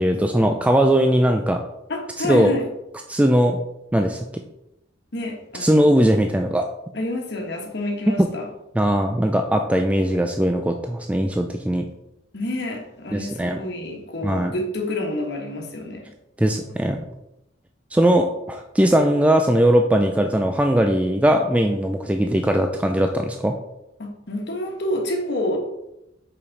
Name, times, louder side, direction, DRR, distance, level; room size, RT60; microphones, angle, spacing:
voice 1, 0.0-1.6 2.2-2.5 3.1-3.6 3.9-4.2 5.6-6.7 8.1-8.2 8.7-11.9 13.1-13.6 14.2-14.5 16.4-17.0 17.9-23.5, right 1 dB, 5° right, 4 dB, 0.3 m, -19 dB
voice 2, 1.9-2.6 5.1-5.8 6.9-8.5 12.3-16.1 24.0-25.6, left 1 dB, 60° left, 1 dB, 1.3 m, -28 dB
5.7 x 5.0 x 4.0 m, 0.87 s
head